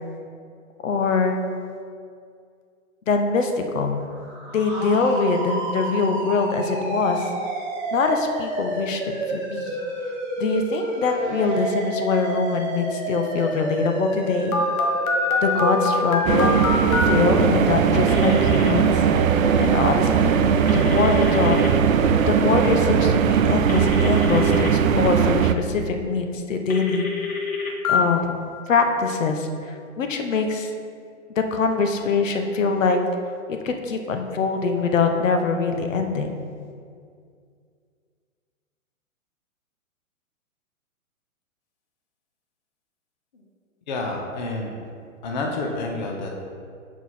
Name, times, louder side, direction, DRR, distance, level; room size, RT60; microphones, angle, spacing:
voice 1, 0.8-1.4 3.1-4.0 4.5-7.3 7.9-9.0 9.3-9.8 10.4-14.6 15.4-16.6 17.0-18.9 19.6-20.4 20.7-21.6 22.3-27.1 27.9-28.4 28.7-30.7 31.4-33.0 33.5-36.3, left 4 dB, 65° left, 5 dB, 0.9 m, -23 dB
sound 1, 4.1-23.1, right 2 dB, 20° right, 0.9 m, -29 dB
Telephone, 14.5-17.1 18.1-18.7 20.7-21.7 23.7-24.7 26.7-28.0, left 3 dB, 85° left, 1.2 m, -25 dB
sound 2, 16.2-25.5, right 8 dB, 75° right, 0.6 m, -20 dB
voice 2, 43.9-44.7 45.2-46.4, left 2 dB, 35° left, 0 dB, 0.6 m, -29 dB
7.7 x 4.7 x 4.1 m, 2.3 s
hypercardioid pair, 165°, 41 cm